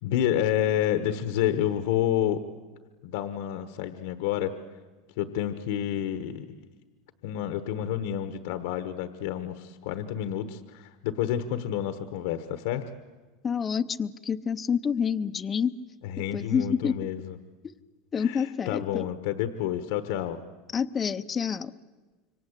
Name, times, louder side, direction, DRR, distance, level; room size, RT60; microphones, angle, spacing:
voice 1, 0.0-2.4 3.0-4.5 5.2-6.6 7.2-12.8 16.0-17.4 18.1-20.4, left 11 dB, 70° left, 11 dB, 1.2 m, -29 dB
voice 2, 13.4-15.7 16.3-17.0 17.6-17.7 18.1-19.1 20.7-21.7, left 7 dB, 25° left, 11 dB, 0.8 m, -28 dB
26.5 x 24.0 x 8.2 m, 1.3 s
supercardioid pair, 130°, 0 cm